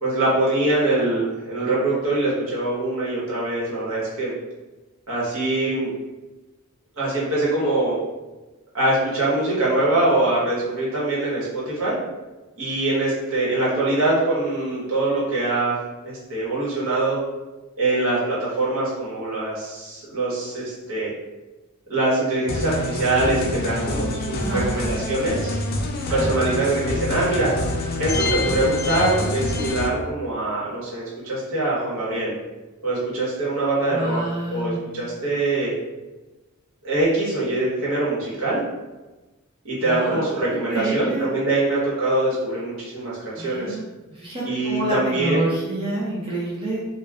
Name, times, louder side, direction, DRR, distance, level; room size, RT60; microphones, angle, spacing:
voice 1, 0.0-4.3 5.1-5.9 7.0-8.0 8.7-11.9 12.6-17.2 17.8-21.1 21.9-25.5 26.1-27.5 28.0-32.3 32.8-34.2 34.5-35.7 36.8-38.6 39.6-43.8 44.4-45.6, right 2 dB, 65° right, -7 dB, 1.1 m, -23 dB
sound 1, 22.5-29.9, left 2 dB, 45° left, 0.3 m, -26 dB
voice 2, 24.4-24.7 26.0-26.6 33.9-34.8 39.8-41.4 43.4-43.8 44.1-46.9, right 1 dB, 25° right, -7 dB, 0.5 m, -28 dB
2.3 x 2.2 x 3.3 m, 1.1 s
head